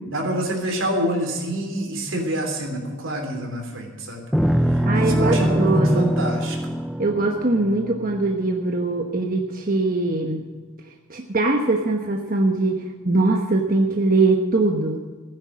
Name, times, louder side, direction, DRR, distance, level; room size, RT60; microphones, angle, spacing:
voice 1, 0.1-4.2 4.6-6.8, equal, 80° right, 3 dB, 3.3 m, -27 dB
sound 1, 4.3-8.8, equal, ahead, 0.4 m, -23 dB
voice 2, 4.8-6.1 7.0-10.5 11.1-15.1, right 2 dB, 45° right, 2 dB, 1.1 m, -22 dB
15.0 x 10.0 x 6.2 m, 1.4 s
head